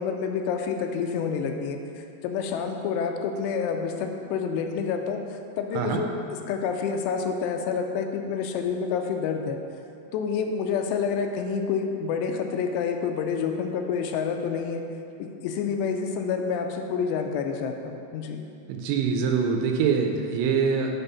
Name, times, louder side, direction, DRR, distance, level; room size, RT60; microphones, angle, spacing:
voice 1, 0.0-9.6 10.1-14.8 15.2-18.5, left 6 dB, 85° left, 4 dB, 2.7 m, -28 dB
voice 2, 18.7-21.0, right 5 dB, 85° right, 3 dB, 2.5 m, -24 dB
8.0 x 3.5 x 5.5 m, 2.7 s
omnidirectional pair, 4.9 m